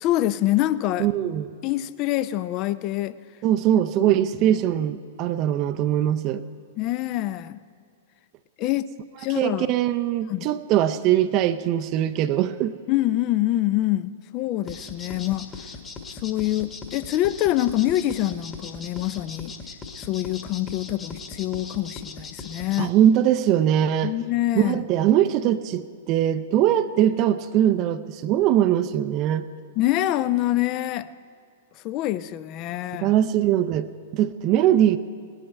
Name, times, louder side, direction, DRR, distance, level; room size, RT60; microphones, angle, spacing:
voice 1, 0.0-1.1 1.6-3.2 4.0-4.6 6.8-7.6 8.6-8.9 9.2-9.7 10.3-10.5 12.9-15.5 16.1-19.5 20.0-23.0 24.0-24.8 29.8-31.1 31.8-33.2, left 15 dB, 35° left, 15 dB, 0.5 m, -25 dB
voice 2, 1.0-1.5 3.4-6.4 9.4-12.7 22.8-24.1 24.6-29.4 33.0-35.0, right 11 dB, 35° right, 11 dB, 0.5 m, -21 dB
sound 1, 14.7-22.8, left 4 dB, 20° left, 1.4 m, -39 dB
18.5 x 11.5 x 4.5 m, 2.4 s
figure-of-eight pair, 105°, 0 cm